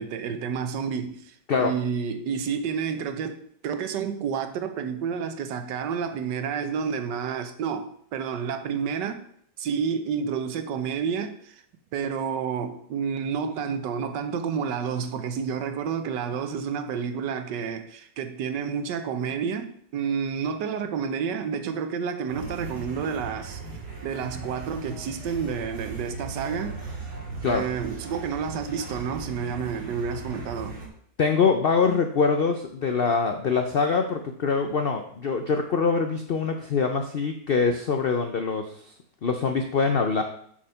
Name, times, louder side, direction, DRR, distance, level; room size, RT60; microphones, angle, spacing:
voice 1, 0.0-9.2 9.6-11.6 11.9-23.6 24.0-26.8 27.5-30.8, right 6 dB, 90° right, 1.4 m, -30 dB
sound 1, 22.3-30.9, right 4 dB, 70° right, 2.5 m, -38 dB
voice 2, 31.2-38.9 39.2-40.2, left 5 dB, 90° left, 0.5 m, -24 dB
7.2 x 4.8 x 5.6 m
omnidirectional pair, 1.8 m